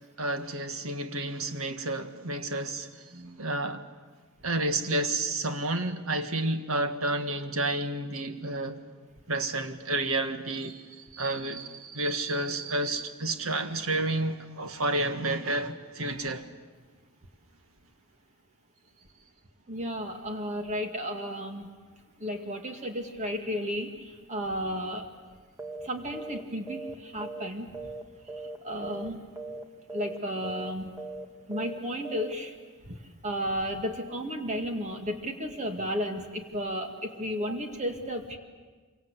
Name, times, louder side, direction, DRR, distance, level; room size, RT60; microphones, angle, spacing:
voice 1, 0.2-3.1 3.4-3.9 4.4-8.8 9.3-16.5, right 2 dB, 70° right, 1.7 m, -30 dB
voice 2, 3.1-3.4 19.7-21.7 22.2-25.1 25.8-27.9 28.3-29.3 29.9-30.9 31.5-32.6 32.9-33.0 33.2-38.4, equal, 35° right, 2.2 m, -33 dB
sound 1, 25.6-25.9 26.1-26.4 26.7-28.0 28.3-28.6 28.8-29.1 29.4-29.6 29.9-30.2 30.4-30.7 31.0-31.2 31.5-31.8 32.0-32.3, right 2 dB, 15° right, 1.8 m, -39 dB
27.0 x 24.5 x 8.3 m
head